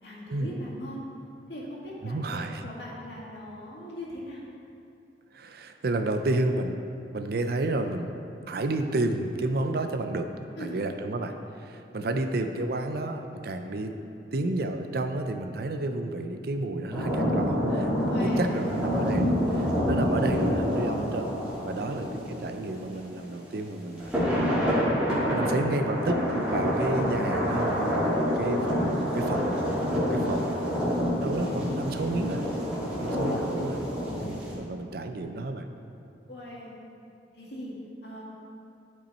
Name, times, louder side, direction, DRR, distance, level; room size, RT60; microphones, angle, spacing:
voice 1, 0.0-1.0 1.5-4.5 10.6-10.8 18.1-18.7 21.7-22.0 32.7-33.0 36.3-36.7 37.3-37.7 38.0-38.2, equal, 70° left, -5 dB, 2.2 m, -40 dB
voice 2, 2.0-2.7 5.3-6.8 7.1-8.1 8.5-10.3 10.6-14.0 14.3-21.3 21.6-24.1 25.1-29.5 30.1-30.6 31.2-32.4 33.0-33.8 34.2-35.7, right 2 dB, 60° right, 7 dB, 0.5 m, -31 dB
sound 1, 16.9-23.2 24.0-34.5, equal, 5° right, 2.1 m, -27 dB
12.0 x 5.3 x 4.2 m, 2.6 s
head